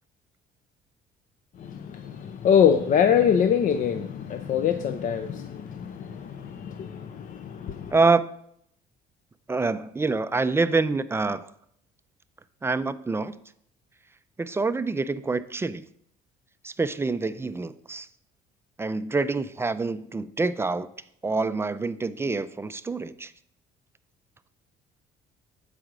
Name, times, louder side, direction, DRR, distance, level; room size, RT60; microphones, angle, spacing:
voice 1, 1.6-8.0, left 8 dB, 50° left, 0.5 m, -24 dB
voice 2, 7.9-8.3 9.5-11.5 12.6-13.3 14.4-15.8 16.6-18.1 18.8-20.9 21.2-23.3, right 3 dB, 15° right, 0.3 m, -26 dB
7.9 x 4.9 x 6.0 m
cardioid pair, 110°, 17 cm